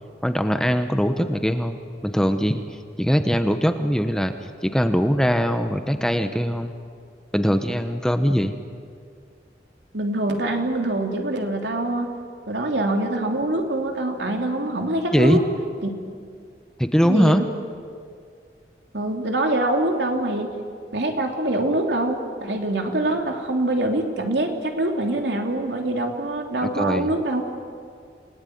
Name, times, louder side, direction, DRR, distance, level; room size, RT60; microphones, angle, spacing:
voice 1, 0.2-2.6 3.0-4.3 4.6-6.7 7.3-8.5 15.1-15.4 16.8-17.4 26.8-27.1, equal, 5° left, 8 dB, 1.0 m, -21 dB
voice 2, 9.9-12.1 12.5-15.4 15.8-15.9 17.0-17.4 18.9-20.5 20.9-27.4, right 1 dB, 85° right, 3 dB, 3.2 m, -24 dB
28.5 x 19.5 x 9.4 m, 2.2 s
head